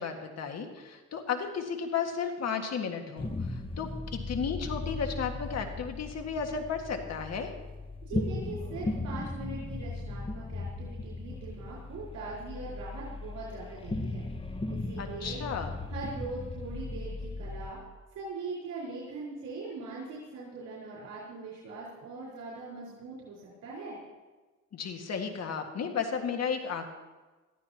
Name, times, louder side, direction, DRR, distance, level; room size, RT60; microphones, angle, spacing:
voice 1, 0.0-7.5 15.0-15.8 24.7-26.9, left 6 dB, 60° left, 4 dB, 1.9 m, -34 dB
sound 1, 3.2-17.7, left 2 dB, 20° left, 1.1 m, -37 dB
voice 2, 8.0-14.2 14.7-15.4 15.9-17.8 18.1-24.0, right 3 dB, 75° right, -6 dB, 4.9 m, -41 dB
19.5 x 14.0 x 2.9 m, 1.3 s
cardioid pair, 90°, 30 cm